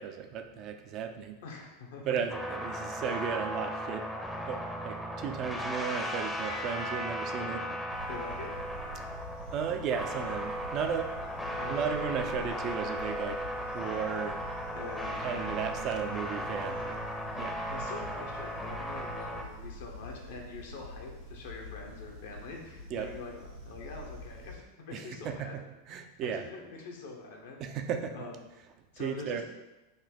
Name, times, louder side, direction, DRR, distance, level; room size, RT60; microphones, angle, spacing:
voice 1, 0.0-1.4 2.0-4.1 4.4-4.6 4.8-7.6 9.5-11.3 11.7-13.4 13.7-14.4 15.2-17.0 17.4-17.6 22.9-23.1 24.9-25.6 25.9-26.4 27.6-28.2 29.0-29.4, right 7 dB, 45° right, 6 dB, 0.4 m, -34 dB
voice 2, 1.4-2.0 7.4-7.7 8.1-8.6 11.6-11.8 13.7-13.9 14.7-15.3 17.7-25.6 26.2-27.7 28.1-28.4 28.9-29.4, left 3 dB, 70° left, 1 dB, 0.7 m, -44 dB
sound 1, 2.3-19.4, equal, 5° left, 0.6 m, -36 dB
sound 2, 7.9-24.6, equal, 70° right, 1.1 m, -46 dB
3.9 x 2.1 x 3.5 m, 1.0 s
hypercardioid pair, 95°, 0 cm